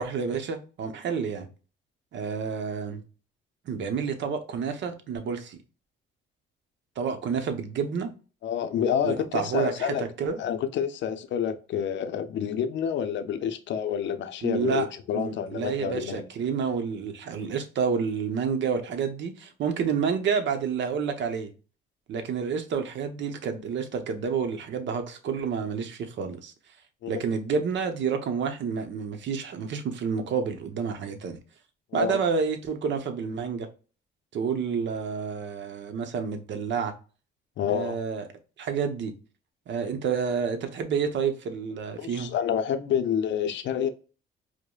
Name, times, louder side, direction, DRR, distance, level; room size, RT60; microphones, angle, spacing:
voice 1, 0.0-1.5 2.1-3.0 3.6-5.6 7.0-8.1 9.0-10.4 14.4-14.9 15.1-21.5 22.1-26.5 27.1-31.4 31.9-33.7 34.3-36.9 37.7-38.3 38.6-39.1 39.7-42.3, right 6 dB, 65° right, 0.7 m, -29 dB
voice 2, 8.4-10.1 10.4-16.2 27.0-27.1 31.9-32.2 37.6-38.0 42.0-43.9, left 8 dB, 70° left, 0.5 m, -28 dB
4.8 x 2.1 x 2.3 m
cardioid pair, 90°, 20 cm